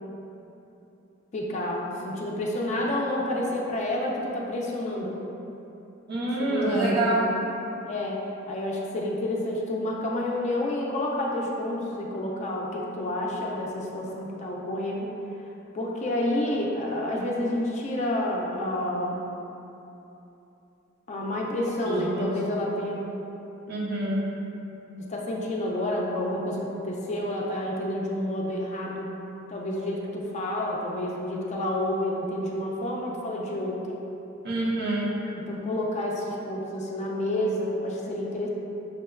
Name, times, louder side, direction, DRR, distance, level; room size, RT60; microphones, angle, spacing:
voice 1, 1.3-5.2 6.4-7.3 7.8-8.2 8.5-15.1 15.7-19.2 21.1-23.0 25.0-29.1 29.5-33.8 35.3-38.5, left 1 dB, 35° left, -2 dB, 0.4 m, -29 dB
voice 2, 6.1-7.4 21.8-22.4 23.7-24.3 34.4-35.1, right 1 dB, 55° right, -4 dB, 0.6 m, -26 dB
6.2 x 2.2 x 2.2 m, 3.0 s
head